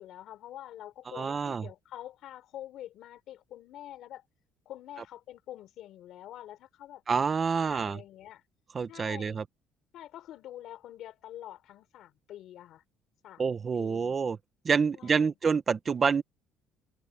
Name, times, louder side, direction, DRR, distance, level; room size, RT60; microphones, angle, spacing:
voice 1, 0.0-4.2 4.6-7.0 7.5-8.4 8.9-9.4 9.9-12.8 13.2-14.2 15.0-15.3, left 12 dB, 50° left, 4.6 m, -46 dB
voice 2, 1.1-1.7 7.1-8.0 8.7-9.4 13.4-14.4 14.6-16.2, right 5 dB, 20° right, 0.7 m, -27 dB
cardioid pair, 175°, 0 cm